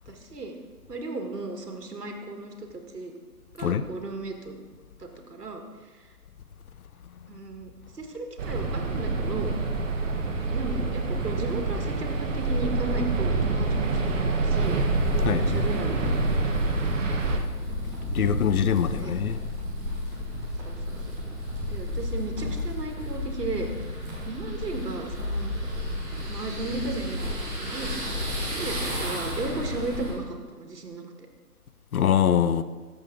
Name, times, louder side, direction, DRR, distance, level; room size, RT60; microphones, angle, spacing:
voice 1, 0.1-0.5 0.9-3.1 3.5-4.6 5.0-5.6 7.3-9.5 10.5-14.8 15.1-17.0 19.0-19.2 20.6-21.0 21.7-23.7 24.3-25.5 26.3-28.0 28.5-31.1, right 3 dB, 85° right, 1.8 m, -35 dB
sound 1, 8.4-17.4, right 3 dB, 55° right, 1.3 m, -26 dB
sound 2, 14.6-30.1, left 1 dB, 5° right, 1.2 m, -32 dB
voice 2, 15.2-15.6 18.1-19.4 31.9-32.6, left 8 dB, 65° left, 0.7 m, -23 dB
12.0 x 7.3 x 3.8 m
hypercardioid pair, 150°, 46 cm